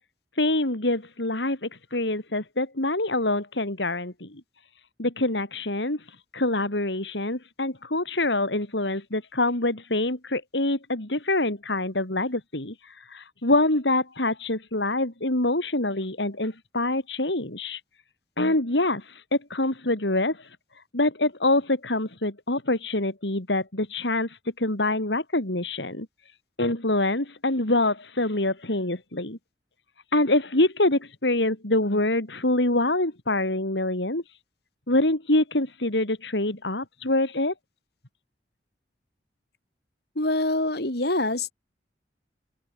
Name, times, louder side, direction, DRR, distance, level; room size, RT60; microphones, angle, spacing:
voice 1, 0.4-4.4 5.0-6.0 6.3-17.8 18.4-19.2 19.5-20.5 20.9-26.1 26.6-29.4 30.1-34.2 34.9-37.5, left 2 dB, 80° left, 3.9 m, -25 dB
voice 2, 40.1-41.5, left 2 dB, 60° left, 4.8 m, -25 dB
open air
head